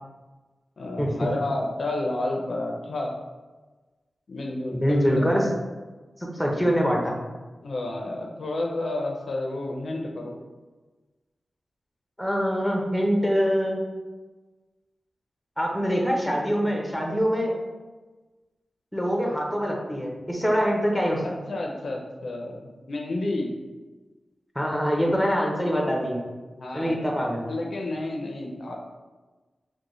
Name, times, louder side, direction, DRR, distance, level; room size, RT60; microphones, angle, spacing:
voice 1, 0.8-3.2 4.3-5.3 7.6-10.4 21.2-23.5 26.6-27.1 27.5-28.8, left 2 dB, 65° left, 1 dB, 0.4 m, -31 dB
voice 2, 4.7-5.5 6.3-7.1 12.2-13.8 15.6-17.6 18.9-21.3 24.6-26.2 26.7-27.5, equal, ahead, -1 dB, 0.6 m, -24 dB
3.8 x 2.1 x 3.0 m, 1.2 s
wide cardioid pair, 90°, 0 cm